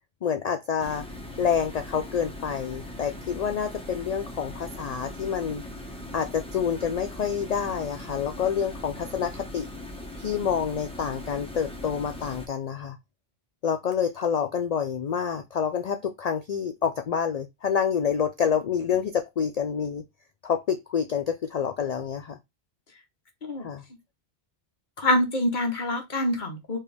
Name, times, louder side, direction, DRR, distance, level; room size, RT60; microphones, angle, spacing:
voice 1, 0.2-1.1 1.4-5.6 6.1-9.7 10.2-13.0 13.6-20.0 20.4-22.4 23.6-23.8, left 7 dB, 60° left, 0.4 m, -28 dB
sound 1, 0.8-12.5, left 1 dB, 5° left, 0.8 m, -40 dB
voice 2, 25.0-26.8, left 1 dB, 45° left, 1.2 m, -25 dB
4.4 x 3.0 x 3.4 m
omnidirectional pair, 1.2 m